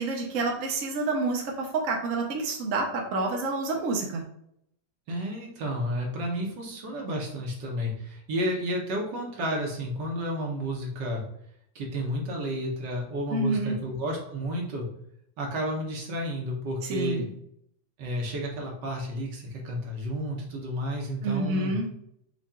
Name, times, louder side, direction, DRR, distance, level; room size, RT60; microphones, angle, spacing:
voice 1, 0.0-4.2 13.3-13.8 16.9-17.3 21.2-21.9, right 2 dB, 55° right, 0 dB, 1.0 m, -28 dB
voice 2, 5.1-11.2 11.8-14.9 15.4-17.3 18.0-21.8, equal, 70° right, -1 dB, 1.7 m, -31 dB
5.6 x 2.5 x 3.7 m, 0.72 s
omnidirectional pair, 2.0 m